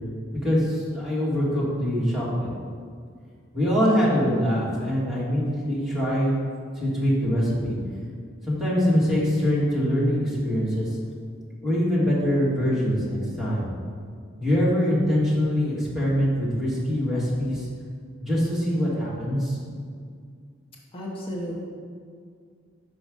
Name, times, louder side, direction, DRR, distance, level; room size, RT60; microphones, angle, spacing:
voice 1, 0.3-2.5 3.5-6.4 6.8-7.8 8.4-10.9 11.6-13.7 14.4-17.7 18.2-19.6, equal, ahead, -8 dB, 1.6 m, -23 dB
voice 2, 20.9-21.5, equal, 30° left, -3 dB, 0.9 m, -33 dB
5.3 x 4.9 x 4.8 m, 2.1 s
head